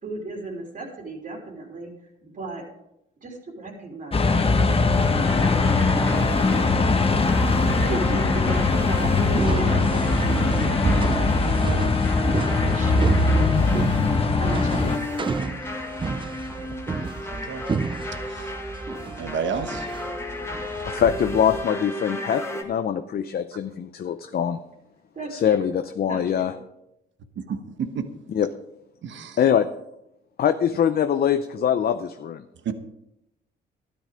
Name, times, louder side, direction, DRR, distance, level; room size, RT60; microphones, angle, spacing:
voice 1, 0.0-1.9 2.2-2.6 3.2-4.3 4.8-6.3 6.5-6.8 7.8-11.8 12.5-13.6 14.4-15.3 16.0-16.1 25.1-25.7 26.1-26.6, right 3 dB, 45° right, 0 dB, 3.3 m, -35 dB
sound 1, 4.1-15.0, left 3 dB, 30° left, 1.1 m, -21 dB
sound 2, 4.3-22.6, left 2 dB, 15° left, 2.0 m, -32 dB
sound 3, 8.9-21.6, right 4 dB, 25° right, 0.6 m, -31 dB
voice 2, 17.3-17.6 19.2-19.9 27.5-27.6 27.9-28.0 29.0-29.4 32.6-32.7, right 6 dB, 70° right, 9 dB, 1.3 m, -30 dB
voice 3, 20.9-24.6 25.3-26.6 28.3-28.5 29.4-29.7 30.4-32.4, left 8 dB, 50° left, 9 dB, 0.6 m, -23 dB
12.0 x 9.9 x 5.1 m, 0.85 s
cardioid pair, 90°, 20 cm